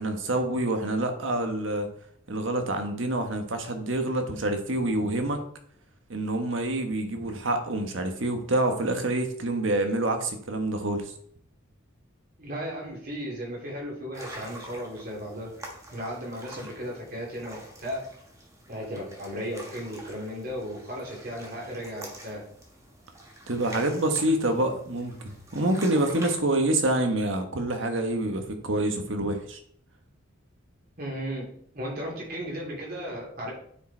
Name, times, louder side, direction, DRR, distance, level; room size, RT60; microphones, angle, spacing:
voice 1, 0.0-1.9 2.3-5.4 6.1-11.1 23.5-25.1 25.5-29.6, right 1 dB, 70° right, 6 dB, 1.2 m, -27 dB
voice 2, 12.4-15.5 15.9-18.0 18.7-22.4 31.0-31.5 31.7-33.5, equal, 50° right, -3 dB, 3.2 m, -35 dB
sound 1, 14.1-26.4, right 1 dB, 15° right, 1.4 m, -46 dB
9.1 x 4.9 x 4.4 m, 0.64 s
head